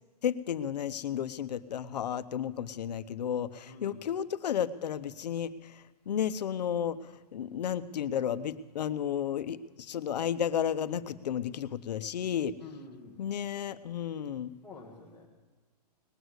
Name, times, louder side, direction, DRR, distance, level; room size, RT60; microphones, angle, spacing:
voice 1, 0.2-12.6 13.2-14.5, left 9 dB, 85° left, 12 dB, 0.7 m, -33 dB
voice 2, 3.6-4.0 12.6-13.2 14.6-15.3, left 3 dB, 5° left, -7 dB, 1.3 m, -48 dB
19.5 x 8.0 x 8.0 m, 1.3 s
hypercardioid pair, 175°, 21 cm